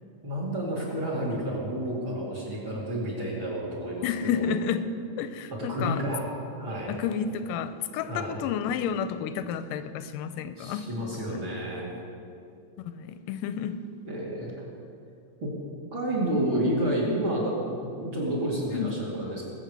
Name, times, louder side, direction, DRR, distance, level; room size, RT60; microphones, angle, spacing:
voice 1, 0.2-4.4 5.5-6.2 6.6-6.9 8.1-8.3 10.6-11.9 14.0-14.5 15.4-15.5 15.9-19.4, right 1 dB, 40° right, -4 dB, 3.0 m, -30 dB
voice 2, 4.0-4.9 5.2-6.0 6.9-10.9 11.1-11.4 12.8-13.8 18.7-19.0, left 8 dB, 90° left, 11 dB, 2.3 m, -31 dB
20.5 x 7.7 x 6.9 m, 2.4 s
omnidirectional pair, 3.8 m